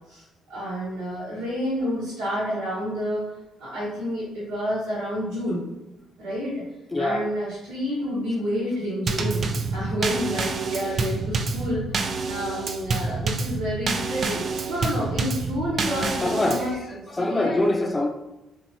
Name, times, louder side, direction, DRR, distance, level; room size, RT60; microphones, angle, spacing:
voice 1, 0.1-3.2 3.6-5.6 6.2-6.6 7.0-11.9 12.3-17.5 17.9-18.0, equal, 75° right, -10 dB, 1.0 m, -29 dB
voice 2, 6.9-7.2 16.2-16.6 17.2-18.1, left 2 dB, 20° left, 3 dB, 0.6 m, -23 dB
Drum kit / Snare drum / Bass drum, 9.1-16.7, right 3 dB, 50° right, 0.3 m, -28 dB
3.0 x 2.8 x 2.7 m, 1.0 s
hypercardioid pair, 50°, 0 cm